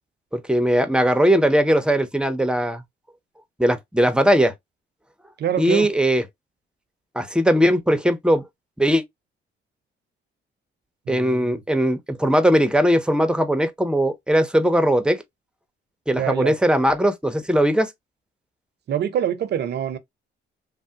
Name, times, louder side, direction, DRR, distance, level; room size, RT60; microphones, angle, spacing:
voice 1, 0.3-2.8 3.6-4.5 5.6-6.2 7.1-8.4 8.8-9.0 11.1-15.2 16.1-17.9, equal, 5° right, 0.6 m, -19 dB
voice 2, 5.4-5.9 11.1-11.6 16.1-16.6 18.9-20.0, right 9 dB, 55° right, 0.6 m, -25 dB
3.3 x 2.0 x 2.7 m
cardioid pair, 90°, 20 cm